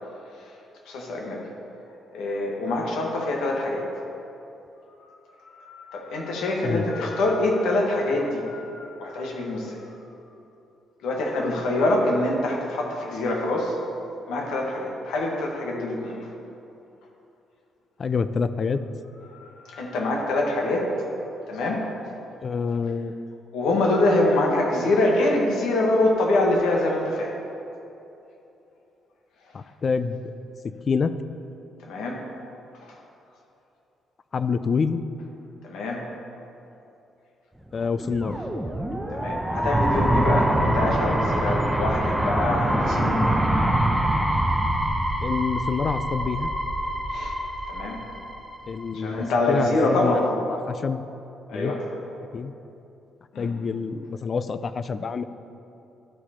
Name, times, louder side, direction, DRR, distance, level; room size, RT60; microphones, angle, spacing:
voice 1, 0.8-1.5 2.1-3.9 5.0-9.9 11.0-13.8 14.3-16.3 19.2-21.1 21.5-21.9 23.5-27.4 31.8-32.2 32.7-33.0 35.6-36.1 39.1-43.3 47.1-47.4 47.7-48.0 48.9-50.3 51.5-51.8 53.3-53.5, left 2 dB, 85° left, 0 dB, 1.4 m, -25 dB
voice 2, 18.0-18.8 22.4-23.1 29.5-30.2 30.9-31.1 34.3-35.0 37.7-38.4 45.2-46.5 48.7-51.0 51.5-51.7 52.3-52.5 53.4-55.2, left 5 dB, 45° left, 12 dB, 0.4 m, -27 dB
sound 1, 37.9-48.8, right 1 dB, 5° right, 0.7 m, -24 dB
12.0 x 4.8 x 4.3 m, 2.8 s
cardioid pair, 90°, 0 cm